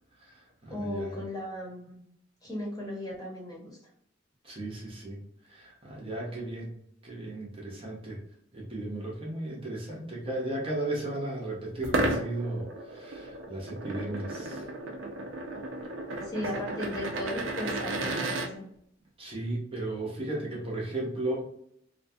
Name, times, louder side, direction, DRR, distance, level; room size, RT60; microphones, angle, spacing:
voice 1, 0.2-1.2 4.4-5.2 5.5-6.8 7.0-8.2 8.5-14.7 19.2-21.4, right 1 dB, 30° right, -3 dB, 0.7 m, -35 dB
voice 2, 0.7-2.0 2.4-3.8 16.2-18.7, left 1 dB, 20° left, -4 dB, 0.9 m, -36 dB
sound 1, 11.8-18.5, right 2 dB, 85° right, 0.5 m, -33 dB
2.5 x 2.3 x 2.6 m, 0.71 s
head